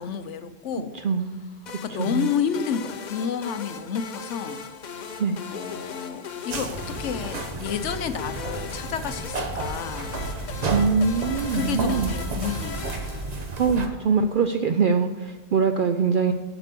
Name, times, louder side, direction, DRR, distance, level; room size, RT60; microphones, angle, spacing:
voice 1, 0.0-1.0 1.8-4.6 5.5-10.2 11.5-12.9, left 7 dB, 70° left, 11 dB, 0.9 m, -30 dB
voice 2, 0.9-1.5 1.9-2.3 5.2-5.4 10.7-12.1 13.6-16.3, right 5 dB, 65° right, 7 dB, 0.5 m, -23 dB
sound 1, 1.7-13.8, left 6 dB, 50° left, 0.5 m, -38 dB
sound 2, 6.5-13.9, right 3 dB, 35° right, 0.9 m, -32 dB
7.8 x 6.0 x 6.7 m, 1.2 s
omnidirectional pair, 1.3 m